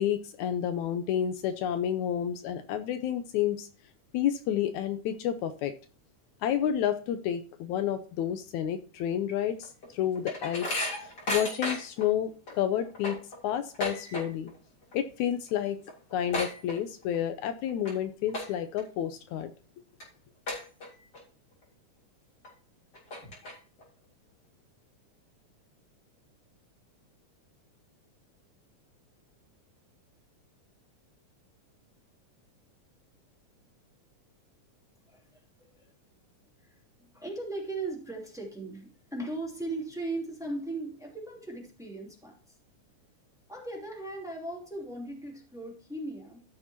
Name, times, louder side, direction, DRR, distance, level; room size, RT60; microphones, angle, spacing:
voice 1, 0.0-3.7 4.1-5.7 6.4-13.2 13.4-14.5 14.9-15.8 16.1-19.5, left 10 dB, 80° left, 2.0 m, -30 dB
sound 1, 9.6-12.1 12.5-12.6 12.8-14.6 14.8-15.2 15.5-15.6 15.8-17.2 17.7-17.9 18.3-18.8 19.3-19.4 20.0-20.1 20.5-21.2 21.6-21.7 22.4-22.5 22.9-23.8, left 1 dB, 35° left, 3.6 m, -35 dB
voice 2, 35.1-35.4 35.7-35.9 36.6-42.6 43.5-46.4, right 2 dB, ahead, 2.4 m, -38 dB
14.5 x 6.2 x 2.9 m
omnidirectional pair, 3.5 m